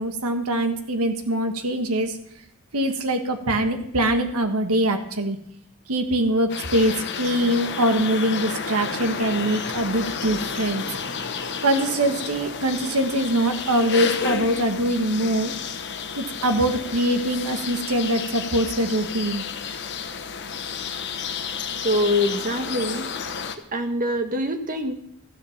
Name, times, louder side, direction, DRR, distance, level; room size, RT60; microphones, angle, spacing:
voice 1, 0.0-2.2 2.7-5.4 5.9-10.8 11.6-15.5 16.2-19.4, right 1 dB, 90° right, 6 dB, 1.4 m, -23 dB
sound 1, 6.5-23.6, left 6 dB, 55° left, 1.1 m, -31 dB
voice 2, 21.8-23.1 23.7-24.9, left 1 dB, 40° right, 6 dB, 1.4 m, -24 dB
14.0 x 7.3 x 7.1 m, 0.72 s
head